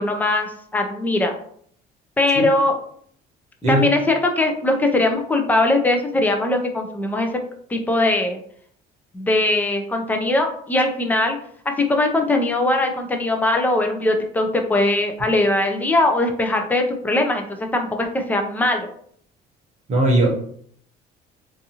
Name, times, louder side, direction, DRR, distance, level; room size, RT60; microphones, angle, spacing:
voice 1, 0.0-1.3 2.2-2.7 3.7-7.3 7.7-8.4 9.1-11.4 11.8-18.9, left 2 dB, 10° left, 4 dB, 0.3 m, -20 dB
voice 2, 19.9-20.3, right 1 dB, 35° right, 0 dB, 0.8 m, -18 dB
2.6 x 2.4 x 2.7 m, 0.62 s
cardioid pair, 145°, 19 cm